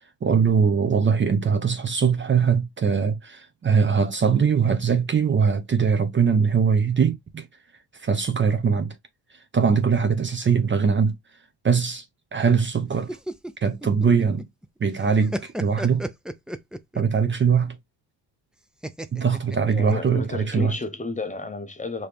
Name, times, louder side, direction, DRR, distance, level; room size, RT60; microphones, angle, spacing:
voice 1, 0.2-7.5 7.9-8.9 9.3-11.2 11.6-12.1 12.3-13.2 13.6-14.5 14.8-16.1 16.9-17.8 19.1-20.7, right 6 dB, 25° right, 0.7 m, -21 dB
sound 1, 12.9-14.7 15.0-17.2 18.8-20.3, right 1 dB, ahead, 0.3 m, -33 dB
voice 2, 19.7-22.1, left 3 dB, 20° left, 0.8 m, -31 dB
4.8 x 3.1 x 3.4 m
cardioid pair, 115°, 42 cm